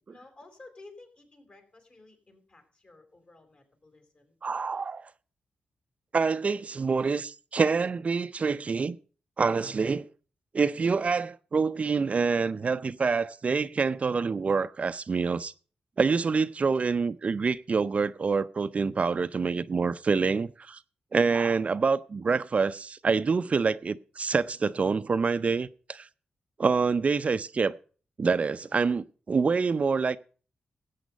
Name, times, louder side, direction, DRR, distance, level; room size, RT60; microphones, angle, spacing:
voice 1, 0.1-4.4, left 2 dB, 45° left, 4.7 m, -53 dB
voice 2, 4.4-5.1 6.1-9.0 9.4-10.1 10.5-15.5 16.0-20.8 21.1-26.1 26.6-27.8 28.2-30.2, right 5 dB, 45° right, 0.5 m, -26 dB
14.5 x 8.4 x 5.1 m
cardioid pair, 65°, 3 cm